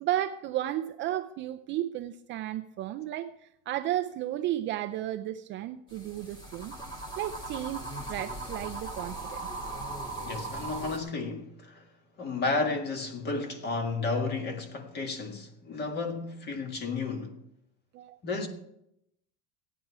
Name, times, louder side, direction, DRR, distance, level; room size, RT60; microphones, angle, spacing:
voice 1, 0.0-6.8 7.2-9.5 17.9-18.2, right 13 dB, 35° right, 0.4 m, -33 dB
sound 1, 5.9-11.0, right 2 dB, 15° left, 2.3 m, -38 dB
voice 2, 10.3-11.8 12.2-17.4 18.2-18.5, left 3 dB, 30° left, 1.8 m, -32 dB
15.5 x 10.0 x 4.7 m
cardioid pair, 165°, 35 cm